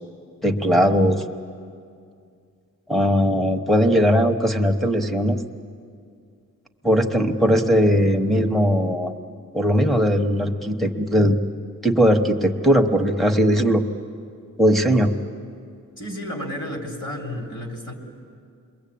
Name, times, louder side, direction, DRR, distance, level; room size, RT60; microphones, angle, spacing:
voice 1, 0.4-1.2 2.9-5.4 6.8-9.1 9.5-11.4 11.8-13.8 14.6-15.1, equal, ahead, 2 dB, 1.1 m, -19 dB
voice 2, 16.0-17.9, equal, 35° left, 2 dB, 3.8 m, -32 dB
28.5 x 22.0 x 8.6 m, 2.3 s
wide cardioid pair, 165°, 34 cm